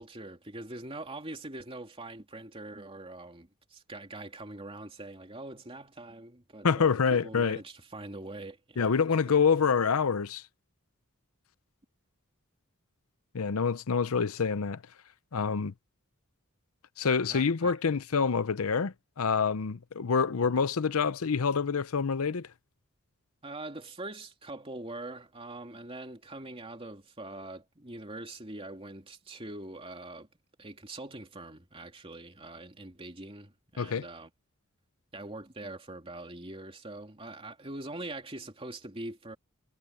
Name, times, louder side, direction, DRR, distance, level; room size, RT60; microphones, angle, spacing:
voice 1, 0.0-9.0 9.3-9.4 17.3-17.7 20.4-20.6 23.4-30.3 30.6-34.3 35.1-39.4, right 2 dB, 25° right, 2.9 m, -43 dB
voice 2, 6.6-7.6 8.8-10.4 13.3-14.8 15.3-15.7 17.0-22.5 33.8-34.1, left 5 dB, 75° left, 0.6 m, -27 dB
head